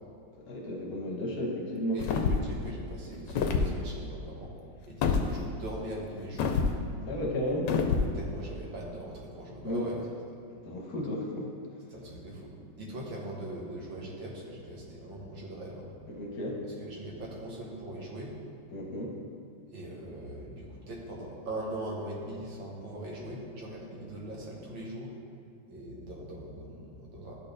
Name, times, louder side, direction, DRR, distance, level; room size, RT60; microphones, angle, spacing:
voice 1, 0.5-2.0 7.0-7.7 9.6-9.8 10.5-11.4 16.1-16.6 18.7-19.1, equal, 60° left, -1 dB, 1.3 m, -33 dB
voice 2, 1.9-4.5 4.9-6.6 8.1-10.1 11.9-15.9 16.8-18.4 19.7-25.1 25.7-27.4, right 1 dB, 90° right, -3 dB, 2.0 m, -41 dB
sound 1, 2.0-2.5 3.3-3.7 5.0-5.3 6.4-6.7 7.7-8.1, left 5 dB, 75° left, 1.2 m, -26 dB
11.5 x 4.3 x 3.3 m, 2.3 s
omnidirectional pair, 2.0 m